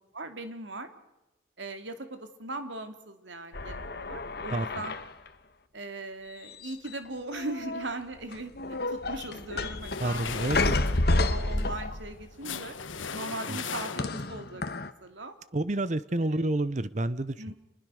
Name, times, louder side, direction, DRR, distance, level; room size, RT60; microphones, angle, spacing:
voice 1, 0.1-0.9 1.6-5.0 5.7-10.6 11.3-12.8 13.1-15.3 16.2-16.3 17.4-17.5, right 2 dB, 75° right, 7 dB, 2.8 m, -39 dB
sound 1, 3.5-5.3 6.4-7.1 7.3-7.9 8.3-12.2 14.0-14.9, left 2 dB, 55° left, 1.3 m, -30 dB
sound 2, 9.8-14.4, left 6 dB, 90° left, 1.4 m, -39 dB
voice 2, 10.0-10.7 13.5-13.6 15.5-17.5, right 1 dB, 40° right, 15 dB, 0.8 m, -29 dB
27.5 x 21.0 x 6.5 m, 0.96 s
head